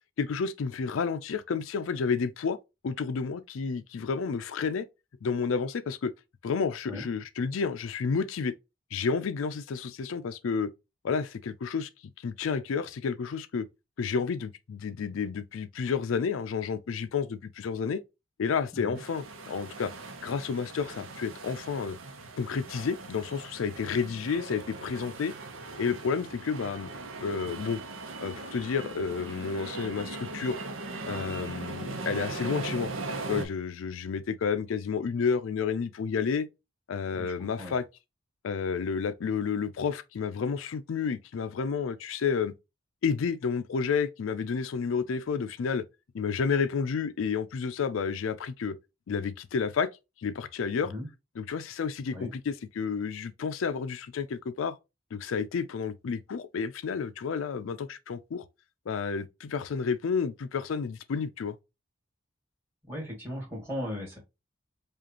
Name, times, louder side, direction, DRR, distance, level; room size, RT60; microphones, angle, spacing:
voice 1, 0.2-2.6 2.8-4.9 5.2-6.1 6.4-8.5 8.9-10.7 11.0-11.9 12.2-13.7 14.0-18.0 18.4-19.9 20.2-22.0 22.4-25.3 25.8-26.9 27.2-27.8 28.2-30.6 31.0-32.9 33.3-36.5 36.9-37.8 38.4-42.5 43.0-45.8 46.1-48.8 49.1-49.9 50.2-50.9 51.4-54.8 55.1-58.4 58.9-61.6, left 5 dB, 85° left, 0.4 m, -30 dB
sound 1, 18.9-33.4, right 3 dB, 85° right, 0.8 m, -39 dB
voice 2, 37.1-37.7 50.8-51.1 52.1-52.3 62.8-64.2, left 1 dB, 10° right, 2.0 m, -37 dB
5.0 x 2.4 x 2.9 m
head